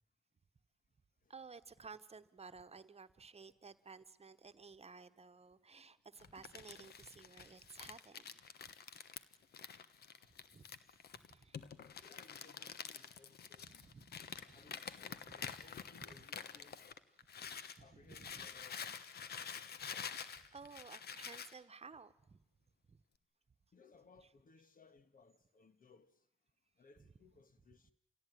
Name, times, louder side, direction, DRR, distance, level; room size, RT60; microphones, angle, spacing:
voice 1, 1.3-8.3 10.5-10.6 11.1-11.6 13.6-14.7 15.1-15.4 16.1-16.2 17.8-18.3 20.5-22.4 22.9-23.0 24.2-24.3 27.0-27.1, right 5 dB, 40° right, 1.2 m, -55 dB
Crumpling crinkling, 6.2-17.8 18.1-21.5, left 7 dB, 80° left, 1.2 m, -48 dB
voice 2, 12.0-13.9 14.5-16.8 17.8-19.0 23.7-26.2 26.8-27.9, left 4 dB, 60° left, 1.7 m, -64 dB
28.0 x 17.0 x 9.3 m
cardioid pair, 60°, 16 cm